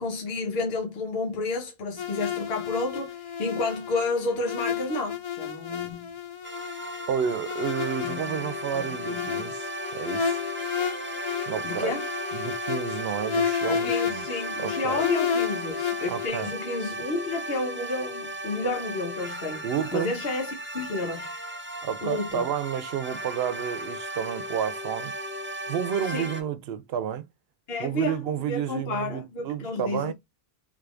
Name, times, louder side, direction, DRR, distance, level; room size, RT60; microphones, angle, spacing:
voice 1, 0.0-6.1 8.0-9.5 11.6-12.1 13.7-19.6 19.9-21.3 22.0-22.5 26.1-26.3 27.7-30.1, left 3 dB, 70° left, 1.2 m, -31 dB
sound 1, 2.0-16.3, left 7 dB, 45° left, 0.4 m, -32 dB
sound 2, 6.4-26.4, right 1 dB, 15° right, 0.5 m, -36 dB
voice 2, 7.1-10.4 11.5-12.0 12.3-14.2 14.6-15.0 16.1-16.5 19.6-20.2 21.8-25.1 25.7-27.2 27.8-30.1, right 8 dB, 80° right, 0.8 m, -30 dB
3.6 x 3.4 x 2.4 m
omnidirectional pair, 1.1 m